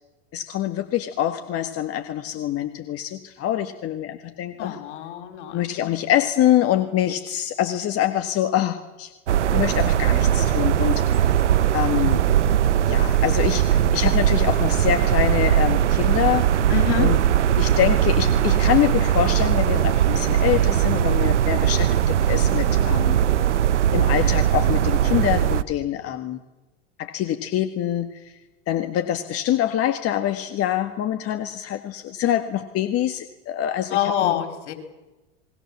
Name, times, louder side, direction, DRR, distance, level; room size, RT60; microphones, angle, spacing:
voice 1, 0.3-4.8 5.5-9.1 9.5-11.4 11.7-12.2 12.8-16.5 17.0-17.2 17.6-23.2 23.9-26.4 27.0-28.3 28.7-34.3, left 12 dB, 40° left, 8 dB, 1.6 m, -25 dB
voice 2, 4.6-5.9 16.7-17.1 33.9-34.7, left 11 dB, 75° left, 7 dB, 4.4 m, -26 dB
sound 1, 9.3-25.6, right 10 dB, 90° right, 1.0 m, -20 dB
28.0 x 20.5 x 7.3 m, 1.1 s
hypercardioid pair, 95°, 35 cm